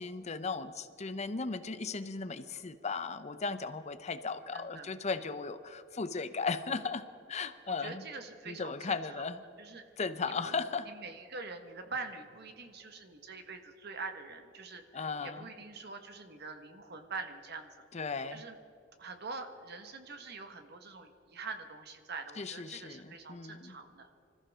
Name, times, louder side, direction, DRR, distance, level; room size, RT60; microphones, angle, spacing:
voice 1, 0.0-8.0 8.5-9.4 10.0-10.9 14.9-15.5 17.9-18.4 22.4-23.8, left 4 dB, 35° left, 11 dB, 0.7 m, -36 dB
voice 2, 4.5-4.9 7.7-9.3 9.6-9.8 10.2-10.5 10.9-17.7 18.0-18.6 19.0-24.1, right 4 dB, 60° right, 6 dB, 1.5 m, -45 dB
25.5 x 14.0 x 3.7 m, 2.7 s
head